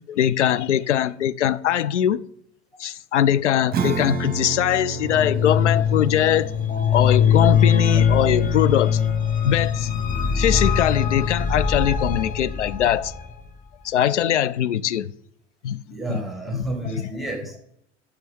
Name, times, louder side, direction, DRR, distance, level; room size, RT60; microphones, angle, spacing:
voice 1, 0.1-2.2 2.8-6.5 6.9-9.0 9.4-9.9 10.3-13.1 13.8-15.1 15.6-15.8 16.1-16.2 16.5-16.6 16.9-17.1, left 10 dB, 75° left, 0.5 m, -21 dB
Acoustic guitar / Strum, 3.7-9.7, right 5 dB, 25° right, 1.1 m, -32 dB
sound 1, 5.0-13.3, left 7 dB, 25° left, 1.0 m, -21 dB
voice 2, 15.9-17.6, right 2 dB, ahead, 1.9 m, -31 dB
10.5 x 6.7 x 3.4 m
figure-of-eight pair, 75°, 35 cm